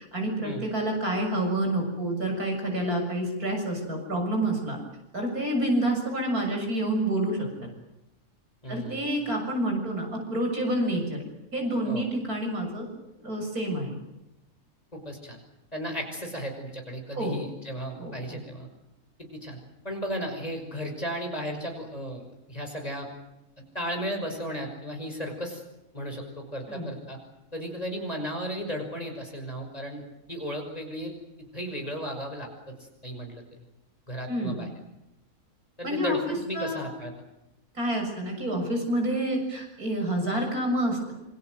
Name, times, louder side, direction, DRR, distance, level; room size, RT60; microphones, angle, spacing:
voice 1, 0.0-4.8 5.1-7.7 8.7-11.2 11.5-12.9 13.2-14.0 17.1-17.4 18.0-18.4 26.7-26.9 34.3-34.7 35.8-36.8 37.7-41.1, right 1 dB, 80° right, 2 dB, 7.6 m, -28 dB
voice 2, 8.6-9.1 11.8-12.1 14.9-15.4 15.7-18.7 19.3-19.6 19.8-23.1 23.7-25.6 25.9-27.2 27.5-30.0 30.3-31.1 31.5-32.8 33.0-33.4 34.1-34.7 35.8-37.1, equal, 25° left, 3 dB, 5.8 m, -35 dB
26.5 x 25.5 x 7.9 m, 0.92 s
omnidirectional pair, 1.6 m